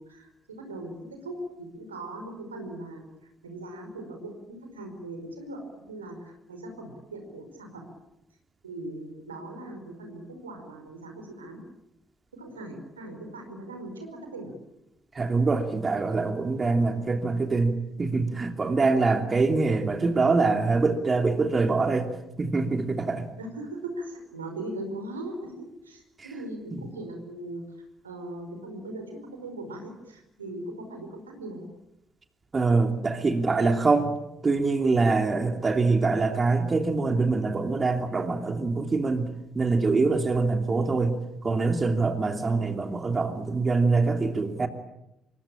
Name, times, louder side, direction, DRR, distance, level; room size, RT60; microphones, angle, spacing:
voice 1, 0.0-3.0 3.4-7.8 8.6-11.6 12.3-14.5 23.4-27.6 28.0-31.7 42.5-42.7, right 1 dB, 80° right, 4 dB, 4.9 m, -39 dB
voice 2, 15.1-22.1 22.4-23.3 26.2-26.3 26.7-26.8 32.5-34.1 34.4-39.3 39.5-44.7, right 3 dB, 30° right, 6 dB, 2.8 m, -24 dB
27.5 x 24.0 x 8.8 m, 0.88 s
figure-of-eight pair, 45°, 0 cm